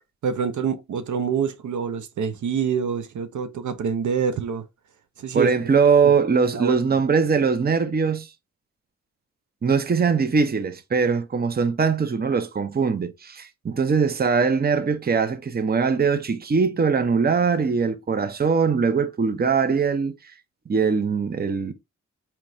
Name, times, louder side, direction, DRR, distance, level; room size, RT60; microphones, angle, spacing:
voice 1, 0.2-4.6 5.2-5.5 6.5-6.8, right 6 dB, 70° right, 0.7 m, -26 dB
voice 2, 5.3-8.3 9.6-20.1 20.7-21.7, right 5 dB, 30° right, 0.7 m, -21 dB
4.5 x 2.9 x 2.6 m
cardioid pair, 70°, 31 cm